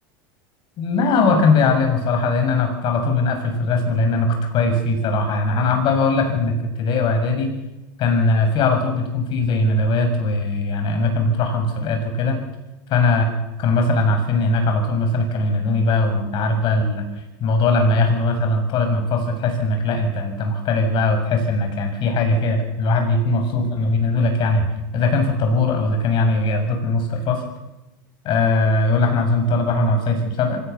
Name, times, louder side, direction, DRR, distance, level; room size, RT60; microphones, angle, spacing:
voice 1, 0.8-7.5 8.0-12.4 12.9-13.3 13.6-17.1 17.4-24.7 24.9-27.4 28.2-30.6, left 3 dB, 50° left, 5 dB, 6.7 m, -20 dB
24.0 x 17.5 x 6.9 m, 1.0 s
supercardioid pair, 110°, 11 cm